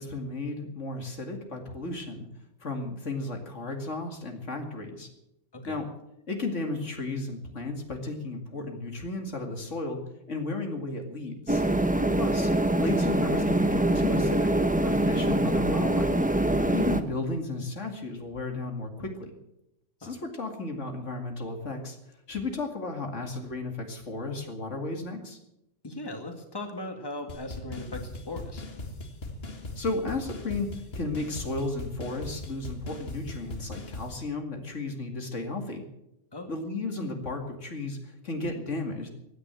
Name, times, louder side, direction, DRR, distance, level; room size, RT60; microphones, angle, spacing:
voice 1, 0.0-2.3 2.6-5.1 5.6-5.8 6.3-10.0 10.3-11.6 12.2-12.5 12.8-14.5 14.8-16.2 16.6-19.3 20.0-22.0 22.3-25.4 29.8-30.7 30.9-35.8 36.5-39.1, left 2 dB, 80° left, 4 dB, 2.6 m, -34 dB
sound 1, 11.5-17.0, right 1 dB, 10° right, 0.8 m, -24 dB
voice 2, 25.8-28.6 36.3-36.5, left 1 dB, 20° left, 5 dB, 2.0 m, -38 dB
sound 2, 27.3-34.1, left 2 dB, 55° left, 2.1 m, -39 dB
15.5 x 10.0 x 7.7 m, 0.84 s
omnidirectional pair, 1.2 m